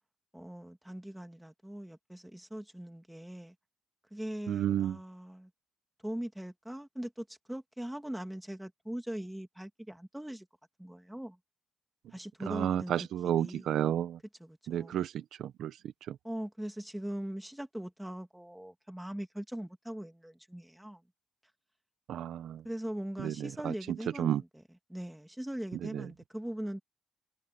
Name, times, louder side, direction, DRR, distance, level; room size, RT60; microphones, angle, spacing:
voice 1, 0.3-3.5 4.1-5.5 6.0-10.5 10.8-11.4 12.1-12.9 13.4-13.7 14.4-15.0 16.2-21.0 22.6-24.6 24.9-26.8, right 1 dB, 5° right, 2.6 m, -41 dB
voice 2, 4.5-5.0 12.5-14.2 14.7-15.8 16.1-16.2 22.1-22.6 23.2-23.7 24.2-24.4 25.8-26.0, right 10 dB, 75° right, 0.9 m, -32 dB
cardioid pair, 90°, 0 cm